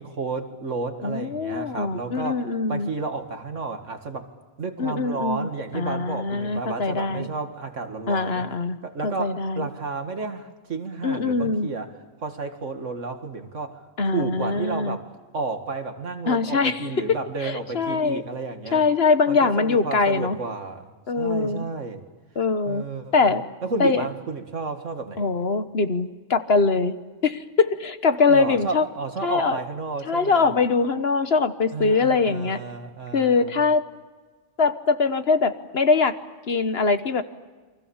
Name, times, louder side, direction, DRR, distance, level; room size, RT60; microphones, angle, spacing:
voice 1, 0.0-2.4 2.7-4.3 4.6-8.4 8.8-11.9 12.2-18.8 19.3-20.9 21.2-22.0 22.7-25.3 28.3-30.5 31.7-33.6, right 4 dB, 75° right, 7 dB, 2.4 m, -32 dB
voice 2, 1.0-2.9 4.8-7.3 8.1-8.8 9.0-9.7 11.0-11.7 14.0-15.0 16.2-18.2 18.7-20.4 21.1-21.6 22.3-22.8 23.1-23.4 23.8-24.1 25.2-27.0 27.2-28.9 29.2-29.6 30.0-32.6 33.1-33.8 34.6-36.2 36.5-37.2, left 4 dB, 55° left, 10 dB, 1.3 m, -22 dB
29.0 x 24.0 x 7.2 m, 1.4 s
omnidirectional pair, 1.3 m